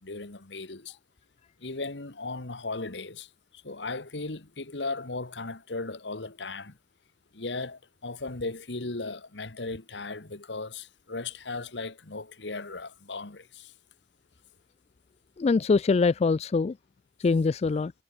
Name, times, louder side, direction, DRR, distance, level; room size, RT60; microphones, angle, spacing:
voice 1, 0.0-1.0 1.6-3.3 3.6-6.7 7.3-13.7, left 3 dB, 75° left, 1.8 m, -36 dB
voice 2, 15.4-16.8 17.2-17.9, left 4 dB, 35° left, 0.3 m, -23 dB
head